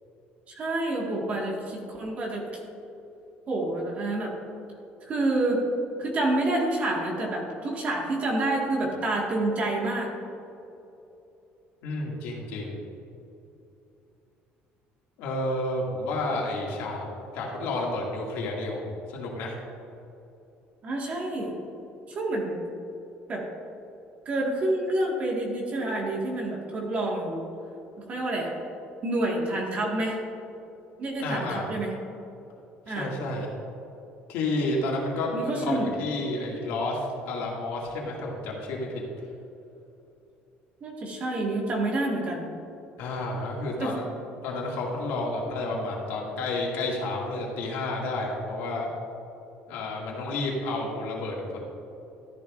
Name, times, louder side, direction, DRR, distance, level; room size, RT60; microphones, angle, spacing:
voice 1, 0.5-2.4 3.5-4.3 5.0-5.6 6.0-10.1 20.8-21.5 22.1-22.6 23.3-23.4 24.3-27.4 28.1-28.5 29.0-30.2 31.0-31.9 32.9-33.1 35.3-35.9 40.8-42.4 43.8-43.9, right 2 dB, 35° right, -2 dB, 1.8 m, -28 dB
voice 2, 11.8-12.8 15.2-17.1 17.3-19.6 31.2-31.7 32.9-33.5 34.3-39.0 43.0-44.1 44.4-48.9 49.7-51.6, left 2 dB, 85° left, -3 dB, 2.3 m, -30 dB
13.5 x 11.0 x 2.6 m, 2.9 s
cardioid pair, 145°, 4 cm